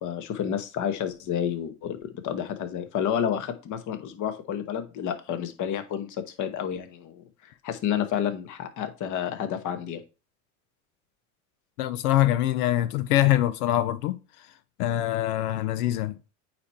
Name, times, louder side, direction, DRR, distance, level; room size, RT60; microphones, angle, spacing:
voice 1, 0.0-10.0, left 9 dB, 45° left, 1.2 m, -30 dB
voice 2, 11.8-14.5 14.8-16.3, left 14 dB, 90° left, 0.6 m, -24 dB
8.7 x 3.0 x 4.3 m
supercardioid pair, 105°, 43 cm